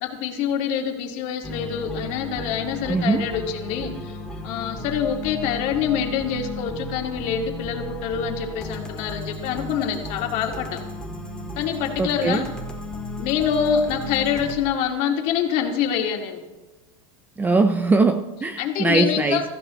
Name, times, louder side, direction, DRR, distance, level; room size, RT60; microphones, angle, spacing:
voice 1, 0.0-3.9 4.4-10.8 11.6-12.4 13.2-16.4 18.6-19.4, left 8 dB, 45° left, 2 dB, 2.3 m, -25 dB
sound 1, 1.4-14.6, left 1 dB, 5° left, 2.0 m, -34 dB
voice 2, 2.9-3.2 12.0-12.5 17.4-19.4, right 3 dB, 10° right, 9 dB, 0.5 m, -21 dB
24.0 x 15.0 x 3.2 m, 1.2 s
supercardioid pair, 155°, 17 cm